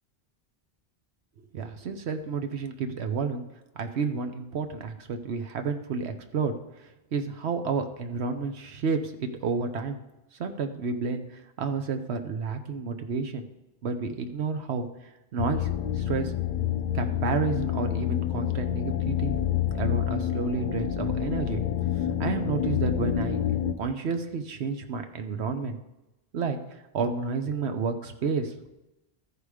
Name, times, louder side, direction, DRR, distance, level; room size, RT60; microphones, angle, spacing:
voice 1, 1.5-3.4 3.8-6.5 7.1-10.0 10.4-11.2 11.6-13.4 13.8-14.9 15.3-16.3 16.9-19.4 19.7-21.6 22.2-23.4 23.8-25.8 26.3-26.6 26.9-28.7, right 5 dB, 85° right, 7 dB, 1.1 m, -30 dB
sound 1, 15.4-23.7, left 10 dB, 55° left, 0.6 m, -28 dB
14.0 x 5.0 x 4.9 m, 0.97 s
omnidirectional pair, 1.1 m